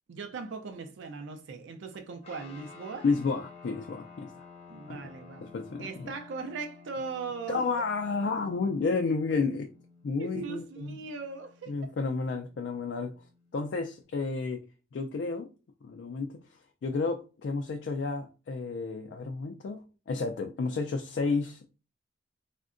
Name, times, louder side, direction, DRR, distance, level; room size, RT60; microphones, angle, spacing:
voice 1, 0.1-3.0 4.7-5.5 5.8-7.7 10.2-11.8, right 4 dB, 80° right, 0.4 m, -39 dB
sound 1, 2.2-14.0, left 4 dB, 35° left, 0.7 m, -53 dB
voice 2, 3.0-4.4 4.9-5.0 5.4-6.1 7.5-9.7 10.0-11.0 11.7-13.1 13.5-14.6 14.9-15.5 15.8-16.4 16.8-21.7, left 4 dB, 70° left, 0.3 m, -31 dB
3.5 x 2.1 x 2.5 m
head